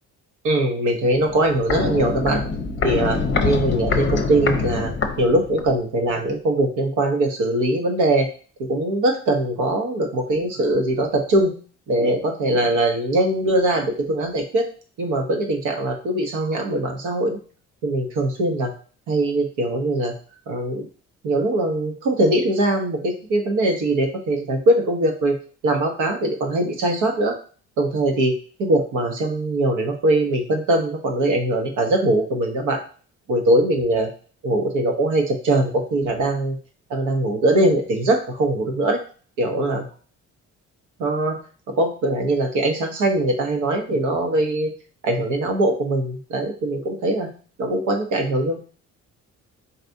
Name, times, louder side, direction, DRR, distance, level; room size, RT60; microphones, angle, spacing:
voice 1, 0.4-2.4 2.8-4.9 5.2-8.3 8.6-11.5 11.9-14.7 15.0-17.4 17.8-18.7 19.1-20.1 20.5-20.9 21.2-25.4 25.6-27.3 27.8-28.3 28.6-32.8 33.3-34.1 34.4-36.6 36.9-39.0 39.4-39.8 41.0-41.4 41.7-44.7 45.0-47.3 47.6-48.6, right 1 dB, 85° right, 4 dB, 0.9 m, -21 dB
Walk footsteps, 1.1-5.8 6.1-6.2, left 4 dB, 40° left, 0.6 m, -25 dB
4.1 x 3.3 x 2.6 m, 0.41 s
cardioid pair, 90°, 30 cm